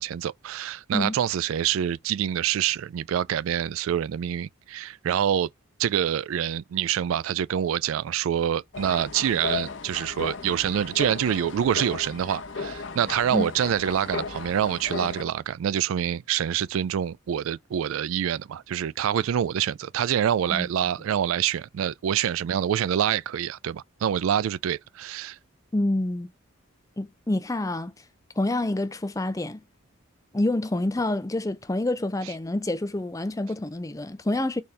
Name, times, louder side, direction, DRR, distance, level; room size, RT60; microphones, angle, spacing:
voice 1, 0.0-5.5 5.8-25.4, right 9 dB, 80° right, 0.3 m, -26 dB
sound 1, 8.7-15.2, left 4 dB, 60° left, 0.9 m, -35 dB
voice 2, 25.7-26.3 27.0-27.9 28.4-29.6 30.3-34.6, left 1 dB, 15° left, 0.5 m, -27 dB
4.2 x 3.4 x 3.2 m
head